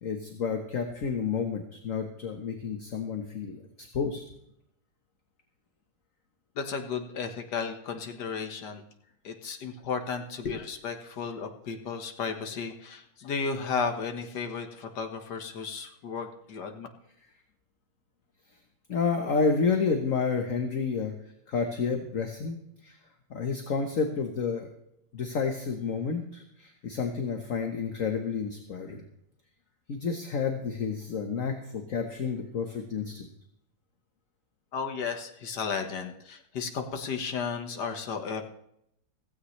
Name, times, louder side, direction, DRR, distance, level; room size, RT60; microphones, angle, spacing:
voice 1, 0.0-4.2 18.9-21.1 21.5-22.6 22.8-23.0 23.3-24.7 25.1-29.0 29.9-33.3, left 5 dB, 50° left, 4 dB, 1.5 m, -30 dB
voice 2, 6.6-8.8 9.2-16.9 34.7-38.4, left 5 dB, 70° left, 6 dB, 2.1 m, -34 dB
16.0 x 16.0 x 3.3 m, 0.76 s
omnidirectional pair, 1.9 m